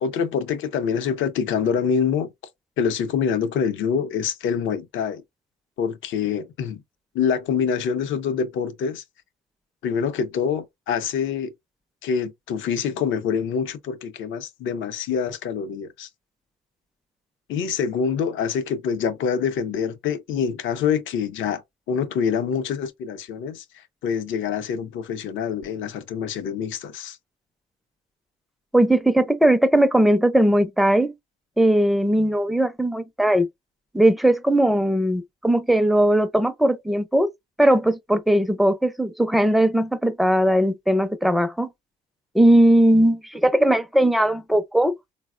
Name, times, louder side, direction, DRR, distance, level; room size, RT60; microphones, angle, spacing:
voice 1, 0.0-2.3 2.8-5.2 5.8-6.8 7.1-9.0 9.8-11.5 12.0-16.1 17.5-21.6 21.9-27.2, left 7 dB, 80° left, 0.6 m, -25 dB
voice 2, 28.7-31.1 31.6-33.5 33.9-37.3 37.6-41.7 42.3-45.0, right 1 dB, ahead, 0.4 m, -19 dB
4.0 x 2.0 x 2.4 m
cardioid pair, 90°, 20 cm